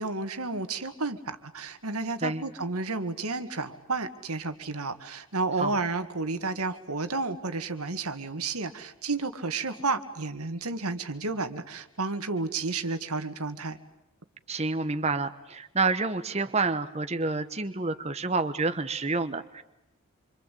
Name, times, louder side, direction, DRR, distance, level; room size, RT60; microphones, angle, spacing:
voice 1, 0.0-13.8, right 3 dB, 90° right, 9 dB, 2.1 m, -31 dB
voice 2, 14.5-19.6, right 3 dB, 30° right, 9 dB, 1.1 m, -28 dB
27.5 x 25.5 x 8.5 m, 0.93 s
head